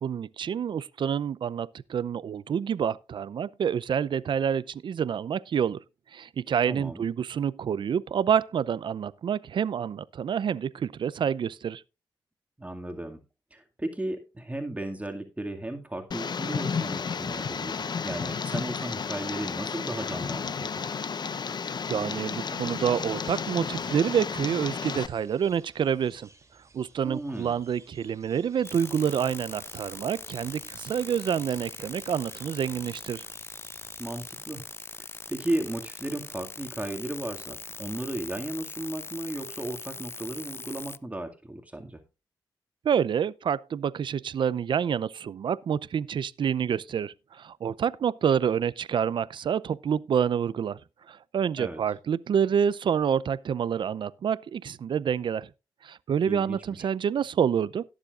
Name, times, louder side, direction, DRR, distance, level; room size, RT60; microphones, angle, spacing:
voice 1, 0.0-5.8 6.1-11.8 21.9-26.3 26.7-33.2 42.8-50.8 51.1-55.5 55.8-57.8, right 8 dB, 70° right, 0.6 m, -28 dB
voice 2, 6.7-7.1 12.6-13.2 13.5-20.9 27.0-27.6 34.0-34.6 35.3-42.0 51.6-51.8 56.3-56.6, right 1 dB, 15° right, 2.2 m, -35 dB
Tick, 16.1-25.1, left 5 dB, 55° left, 0.9 m, -32 dB
sound 1, 22.6-34.4, right 3 dB, 35° right, 2.9 m, -56 dB
sound 2, 28.7-41.0, left 3 dB, 30° left, 0.6 m, -42 dB
18.0 x 7.4 x 2.5 m
cardioid pair, 55°, 9 cm